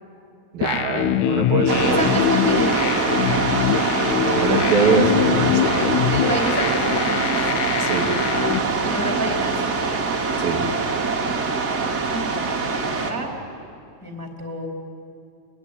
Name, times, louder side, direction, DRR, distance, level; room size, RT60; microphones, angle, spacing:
voice 1, 0.5-2.0 4.2-5.9 7.8-8.1 10.4-10.6, right 3 dB, 80° right, 0 dB, 4.5 m, -23 dB
sound 1, 0.6-8.6, left 10 dB, 75° left, 1.8 m, -23 dB
sound 2, 1.7-13.1, right 4 dB, 30° right, 2.2 m, -23 dB
voice 2, 1.8-3.0 6.1-7.3 8.8-9.7 12.0-13.3 14.0-14.7, right 1 dB, 5° left, 1 dB, 2.5 m, -29 dB
25.5 x 20.0 x 9.8 m, 2.5 s
omnidirectional pair, 4.1 m